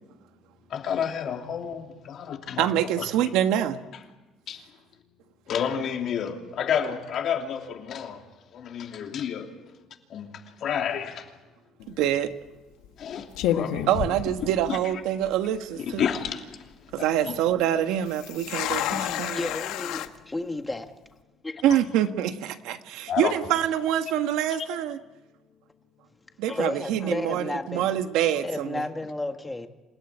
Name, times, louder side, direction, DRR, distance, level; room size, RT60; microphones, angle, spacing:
voice 1, 0.7-2.7 4.5-4.6 5.5-8.2 8.5-9.5 10.1-10.3 10.6-11.2 13.0-13.9 14.7-14.8 16.0-16.4 17.0-17.1 23.1-23.3 24.7-24.8, left 8 dB, 50° left, 3.0 m, -30 dB
voice 2, 2.6-3.8 11.9-12.3 13.9-16.0 16.9-19.4 21.6-25.0 26.4-28.8, right 11 dB, 85° right, 1.4 m, -25 dB
sound 1, 11.8-12.1 12.8-13.0 13.4-14.9 15.2-15.3 15.9-16.3 18.1-20.1, left 11 dB, 85° left, 1.4 m, -30 dB
voice 3, 18.9-20.9 21.4-21.6 26.5-27.9 28.4-29.7, left 2 dB, 10° left, 1.6 m, -32 dB
27.5 x 17.0 x 9.9 m
cardioid pair, 155°, 0 cm